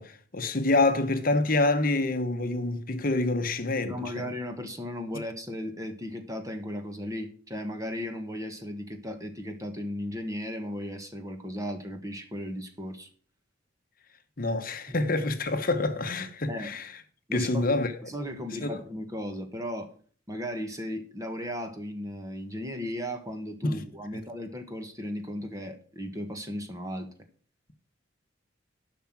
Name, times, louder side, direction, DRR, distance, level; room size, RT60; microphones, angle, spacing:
voice 1, 0.0-4.3 14.4-16.9 17.3-17.9 18.6-18.7 23.6-23.8, left 2 dB, 45° left, 1.1 m, -27 dB
voice 2, 3.9-13.1 14.9-15.0 16.5-16.7 17.3-17.7 18.0-19.9 20.3-27.1, equal, 15° right, 1.5 m, -36 dB
11.0 x 5.9 x 6.0 m
head